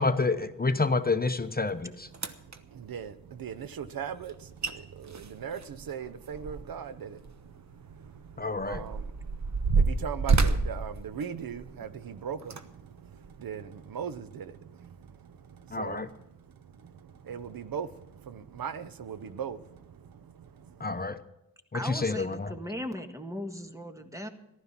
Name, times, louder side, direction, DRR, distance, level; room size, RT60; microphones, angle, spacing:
voice 1, 0.0-2.1 8.4-8.8 15.7-16.1 20.8-21.2 21.7-22.5, left 3 dB, 25° left, 0.8 m, -28 dB
sound 1, 1.7-1.8 2.1-2.6 4.3-4.4 4.6-4.7 5.1-6.9 7.2-7.3 8.1-11.8 12.4-12.6 13.2-13.3, right 4 dB, 50° right, 1.1 m, -28 dB
voice 2, 2.7-16.1 16.8-21.1, right 7 dB, 75° right, 0.7 m, -40 dB
voice 3, 21.7-24.3, equal, 10° right, 1.6 m, -37 dB
15.0 x 12.0 x 5.9 m
cardioid pair, 60°, 35 cm